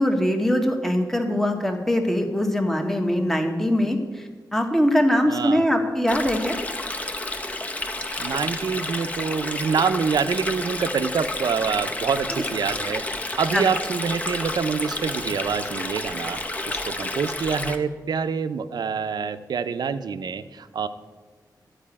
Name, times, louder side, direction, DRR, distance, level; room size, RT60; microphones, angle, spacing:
voice 1, 0.0-6.6 13.5-13.6, equal, 5° left, 4 dB, 1.0 m, -22 dB
voice 2, 5.3-5.7 8.2-13.0 13.4-16.4 16.7-20.9, right 6 dB, 70° right, 11 dB, 0.6 m, -26 dB
Stream, 6.1-17.8, left 2 dB, 20° left, 0.7 m, -30 dB
12.5 x 4.9 x 8.5 m, 1.4 s
wide cardioid pair, 160°, 7 cm